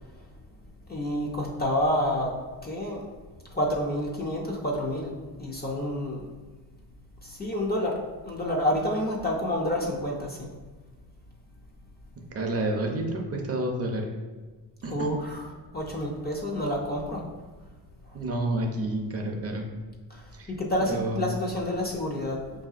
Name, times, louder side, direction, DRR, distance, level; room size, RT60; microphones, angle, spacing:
voice 1, 0.9-2.4 2.6-3.1 3.5-5.1 5.4-6.2 7.2-10.5 14.9-17.3 20.1-22.4, left 1 dB, 25° left, -2 dB, 0.4 m, -29 dB
voice 2, 12.3-14.1 14.8-15.1 18.1-19.7 20.3-20.5 20.9-21.2, right 1 dB, 35° right, 1 dB, 0.4 m, -29 dB
5.4 x 2.7 x 2.4 m, 1.3 s
cardioid pair, 145°, 42 cm